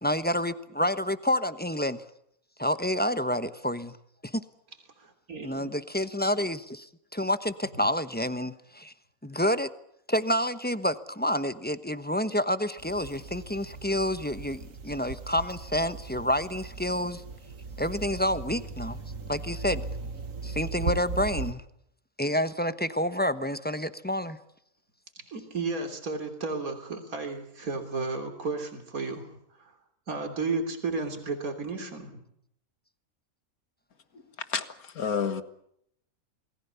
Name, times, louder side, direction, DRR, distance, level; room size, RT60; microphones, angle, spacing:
voice 1, 0.0-2.0 2.6-3.9 4.3-4.4 5.4-8.9 9.2-9.7 10.1-17.2 17.8-19.0 19.3-19.8 20.4-21.6 22.2-24.4, left 1 dB, 10° left, 12 dB, 1.0 m, -28 dB
voice 2, 5.0-5.7 25.2-29.3 29.6-29.7 30.1-32.2, right 3 dB, 80° right, 5 dB, 3.7 m, -33 dB
sound 1, 12.8-21.5, right 4 dB, 65° right, 2.0 m, -38 dB
voice 3, 34.5-35.4, left 6 dB, 90° left, 11 dB, 2.0 m, -30 dB
28.0 x 20.0 x 7.1 m, 0.74 s
omnidirectional pair, 1.5 m